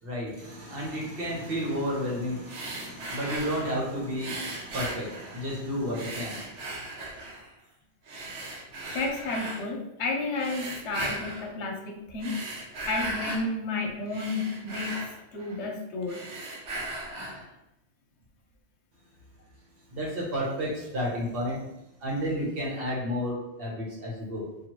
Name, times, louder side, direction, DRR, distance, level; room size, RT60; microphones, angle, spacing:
voice 1, 0.0-6.7 19.9-21.6 22.0-24.5, equal, 55° right, -3 dB, 1.2 m, -32 dB
sound 1, 2.5-3.8 4.2-5.6 5.9-7.5 8.1-9.7 10.4-11.5 12.1-13.5 13.9-15.7 16.0-17.5, right 2 dB, 80° right, 1.1 m, -37 dB
voice 2, 8.9-12.4 12.9-15.0 15.3-16.2, left 3 dB, 70° left, 2 dB, 1.0 m, -31 dB
4.4 x 2.7 x 3.0 m, 0.89 s
omnidirectional pair, 1.2 m